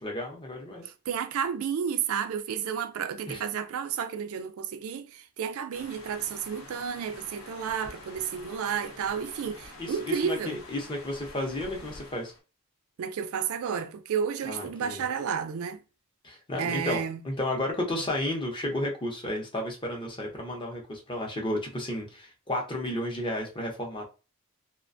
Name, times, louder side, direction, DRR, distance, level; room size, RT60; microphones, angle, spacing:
voice 1, 0.0-0.8 3.3-3.4 9.8-12.3 14.4-15.1 16.2-24.0, left 1 dB, 25° left, 0.6 m, -32 dB
voice 2, 1.1-10.6 13.0-15.8 16.6-17.2, right 7 dB, 75° right, 0.3 m, -31 dB
sound 1, 5.7-12.4, left 2 dB, 70° left, 0.7 m, -47 dB
2.4 x 2.1 x 2.5 m
head